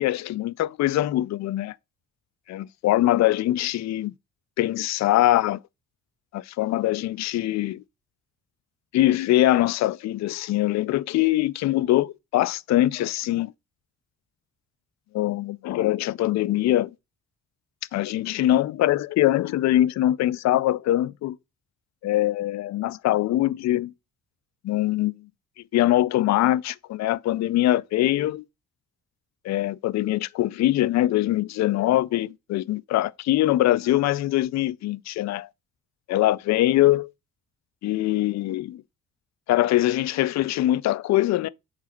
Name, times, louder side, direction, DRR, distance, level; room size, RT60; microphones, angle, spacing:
voice 1, 0.0-1.7 2.5-4.1 4.6-5.6 6.3-7.8 8.9-13.5 15.1-16.9 17.9-21.4 22.0-23.9 24.6-25.3 25.7-28.4 29.4-35.5 36.1-37.1 37.8-38.8 39.5-41.5, left 14 dB, 65° left, 0.5 m, -23 dB
4.9 x 4.0 x 5.8 m
cardioid pair, 90°, 30 cm